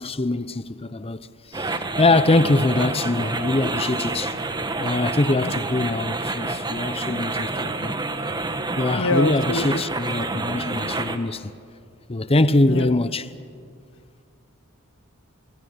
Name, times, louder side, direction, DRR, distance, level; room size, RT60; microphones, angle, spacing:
voice 1, 0.0-4.3 4.8-8.0 8.8-11.5 12.1-13.3, left 2 dB, 25° left, 0.8 m, -23 dB
sound 1, 1.5-11.2, right 2 dB, 20° right, 1.2 m, -28 dB
voice 2, 8.9-9.8 12.6-12.9, left 2 dB, 65° left, 1.4 m, -25 dB
28.0 x 18.0 x 9.6 m
head